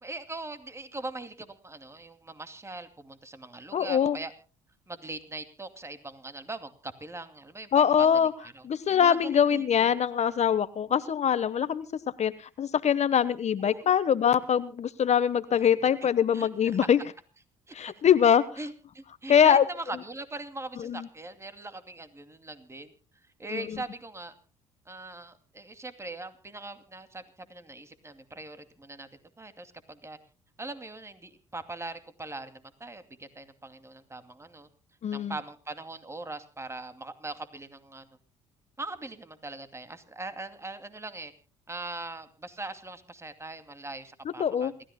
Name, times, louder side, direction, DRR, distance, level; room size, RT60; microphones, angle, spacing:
voice 1, 0.0-4.3 4.9-8.6 8.9-9.9 13.6-13.9 15.6-15.7 16.3-16.8 17.7-17.8 18.6-22.9 23.4-24.3 24.9-27.2 27.5-29.1 29.4-30.2 30.6-34.7 35.1-38.1 38.8-41.3 41.7-44.7, right 2 dB, 20° right, 9 dB, 2.5 m, -41 dB
voice 2, 3.7-4.2 7.7-8.3 8.7-11.8 12.2-12.3 12.6-17.0 17.7-18.4 19.3-19.6 20.8-21.1 23.5-23.6 35.0-35.3 44.4-44.7, left 8 dB, 50° left, 14 dB, 1.1 m, -23 dB
28.0 x 14.0 x 2.2 m, 0.35 s
hypercardioid pair, 55°, 15 cm